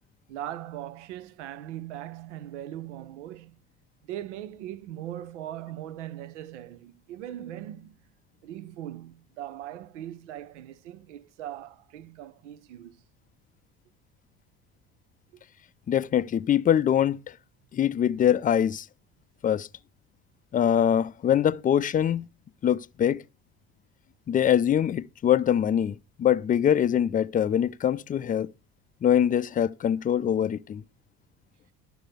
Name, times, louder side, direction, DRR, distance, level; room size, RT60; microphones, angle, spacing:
voice 1, 0.3-3.6 4.0-8.0 8.4-13.0, right 12 dB, 85° right, 0.6 m, -40 dB
voice 2, 15.9-17.3 17.7-18.9 19.4-19.7 20.5-22.3 22.6-23.2 24.3-28.5 29.0-30.8, left 9 dB, 25° left, 0.4 m, -23 dB
11.5 x 4.6 x 6.6 m
hypercardioid pair, 70°, 35 cm